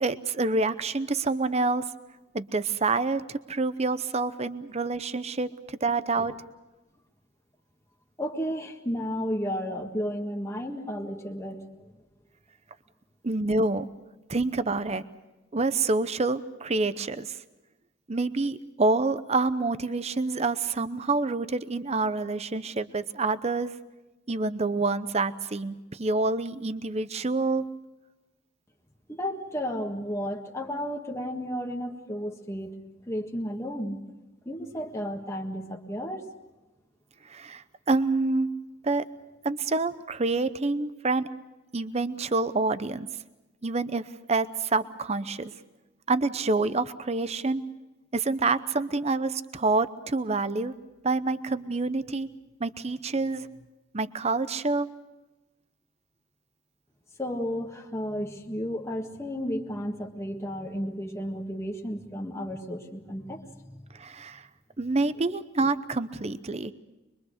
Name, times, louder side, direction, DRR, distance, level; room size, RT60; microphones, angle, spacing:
voice 1, 0.0-1.8 2.3-6.3 13.2-13.9 14.3-15.0 15.5-17.4 18.1-23.7 24.3-27.6 37.3-38.5 38.8-39.0 39.4-41.3 41.7-43.1 43.6-45.5 46.1-47.6 48.1-50.7 51.0-52.3 52.6-53.5 53.9-54.9 63.9-64.5 64.8-66.7, right 3 dB, 30° right, 14 dB, 0.7 m, -27 dB
voice 2, 8.2-11.6 29.1-32.7 33.1-34.0 34.4-36.2 57.2-63.8, equal, 15° left, 2 dB, 1.6 m, -33 dB
24.0 x 23.0 x 6.5 m, 1.1 s
head